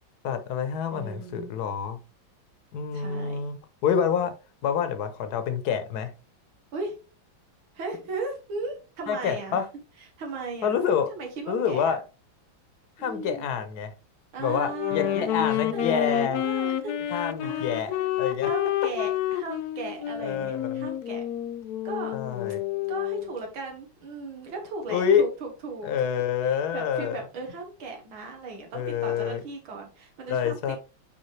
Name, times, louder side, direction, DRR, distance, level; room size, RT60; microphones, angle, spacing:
voice 1, 0.2-2.0 2.7-3.6 3.8-4.3 4.6-6.1 9.1-9.6 10.6-11.1 11.5-12.0 13.0-13.9 14.4-16.4 17.1-18.5 20.2-20.9 22.1-22.6 24.9-25.2 25.8-27.2 28.7-29.4 30.3-30.8, left 7 dB, 60° left, 1.4 m, -27 dB
voice 2, 0.9-1.5 2.9-3.4 6.7-7.0 7.7-9.6 10.2-10.8 11.1-12.0 13.0-13.5 14.3-18.1 18.4-21.2 21.8-22.2 22.9-25.9 26.7-30.8, right 3 dB, 85° right, 2.4 m, -37 dB
Wind instrument woodwind instrument, 14.7-23.3, left 12 dB, 75° left, 0.9 m, -29 dB
9.8 x 3.6 x 3.3 m
omnidirectional pair, 2.2 m